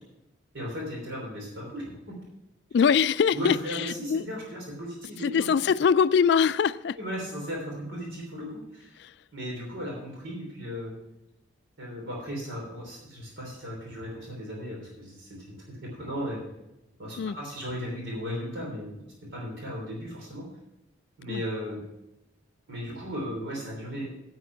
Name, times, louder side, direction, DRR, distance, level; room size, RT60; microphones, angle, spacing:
voice 1, 0.5-2.2 3.3-5.5 7.0-8.9 9.3-10.9 11.8-16.4 17.0-19.0 19.3-20.5 21.2-21.8 22.7-24.1, equal, 80° right, -2 dB, 3.2 m, -36 dB
voice 2, 2.7-4.2 5.2-7.0 9.0-9.1 17.2-17.4 21.3-21.4, left 6 dB, 60° left, 16 dB, 0.3 m, -23 dB
9.5 x 8.2 x 5.6 m, 0.89 s
head